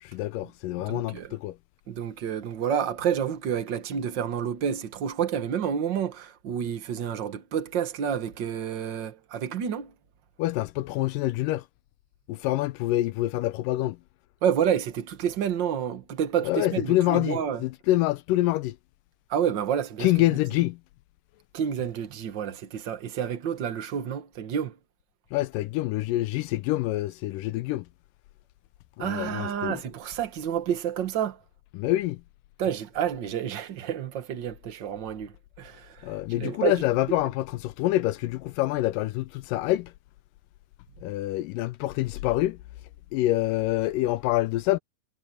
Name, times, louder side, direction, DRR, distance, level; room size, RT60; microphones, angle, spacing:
voice 1, 0.0-1.6 10.4-11.6 12.3-14.0 16.5-18.8 20.0-20.8 25.3-27.9 29.0-29.8 31.8-32.2 36.0-39.9 41.0-42.6 43.1-44.8, left 16 dB, 80° left, 2.0 m, -26 dB
voice 2, 0.9-1.4 1.9-9.9 14.4-17.6 19.3-20.4 21.5-24.8 29.0-31.4 32.6-36.8, right 8 dB, 75° right, 1.0 m, -29 dB
omnidirectional pair, 4.2 m